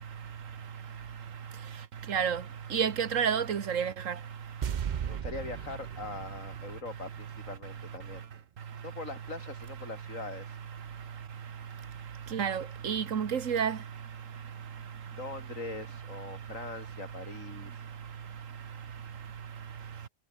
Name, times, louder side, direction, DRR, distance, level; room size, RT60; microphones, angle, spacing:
voice 1, 2.1-2.4 2.7-4.1 12.3-13.8, right 7 dB, 75° right, 1.6 m, -29 dB
sound 1, 4.6-7.8 8.1-8.2, right 8 dB, 50° right, 0.5 m, -37 dB
voice 2, 5.1-8.3 8.8-10.5 15.1-17.8, left 3 dB, 75° left, 3.7 m, -42 dB
omnidirectional pair, 1.4 m